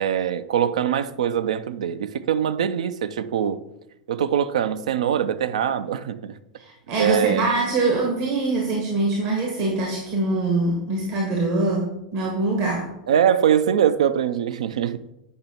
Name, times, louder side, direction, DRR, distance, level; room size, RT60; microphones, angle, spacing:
voice 1, 0.0-3.6 4.1-6.4 7.0-7.5 13.1-15.0, right 9 dB, 70° right, 13 dB, 0.4 m, -22 dB
voice 2, 6.6-12.9, right 2 dB, 50° right, -1 dB, 1.3 m, -23 dB
8.4 x 5.4 x 2.9 m, 0.87 s
figure-of-eight pair, 90°, 4 cm